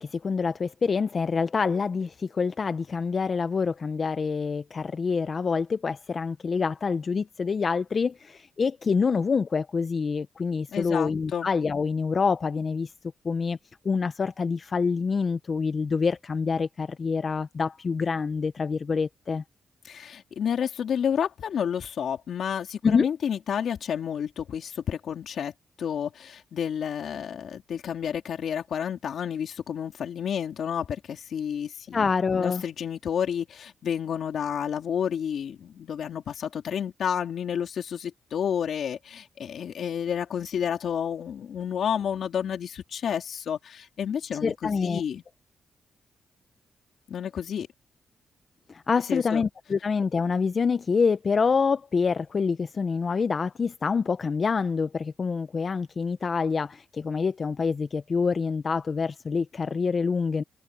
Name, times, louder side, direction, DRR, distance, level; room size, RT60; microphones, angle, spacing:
voice 1, 0.0-12.9 13.2-13.6 13.8-19.4 22.8-23.1 31.9-32.6 44.4-45.0 48.7-60.4, left 5 dB, 50° left, 0.8 m, -26 dB
voice 2, 10.7-11.5 19.8-25.5 25.8-45.2 47.1-47.7 49.0-49.4, left 8 dB, 75° left, 3.3 m, -30 dB
cardioid pair, 65°, 0 cm